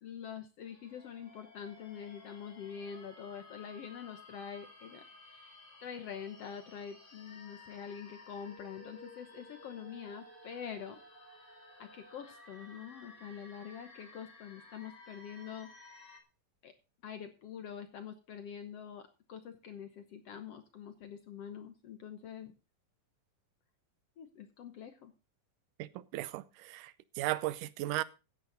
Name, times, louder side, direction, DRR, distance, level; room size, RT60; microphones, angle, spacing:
voice 1, 0.0-5.0 5.3-5.5 5.8-11.0 11.8-15.7 16.6-16.7 17.0-22.5 24.2-25.1, left 8 dB, 65° left, 1.6 m, -45 dB
sound 1, 0.6-16.2, left 2 dB, 20° left, 2.0 m, -55 dB
voice 2, 25.8-28.0, right 16 dB, 75° right, 2.2 m, -36 dB
15.0 x 9.5 x 3.9 m
omnidirectional pair, 3.9 m